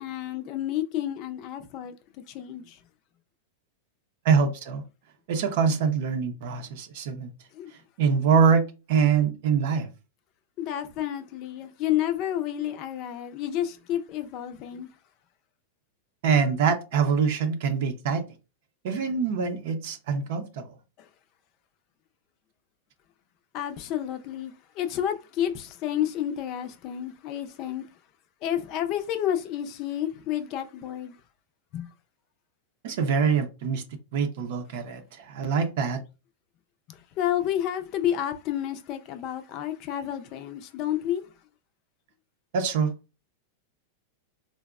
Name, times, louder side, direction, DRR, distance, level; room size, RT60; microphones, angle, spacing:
voice 1, 0.0-1.9 2.3-2.8 7.5-7.7 10.6-14.9 23.5-27.8 28.4-31.1 31.7-31.9 36.9-41.2, left 11 dB, 45° left, 0.5 m, -30 dB
voice 2, 4.2-4.8 5.3-7.3 8.0-9.9 16.2-18.2 18.8-20.7 32.8-33.8 34.1-36.0 42.5-42.9, right 6 dB, 65° right, 0.6 m, -24 dB
3.8 x 2.1 x 2.3 m
hypercardioid pair, 110°, 0 cm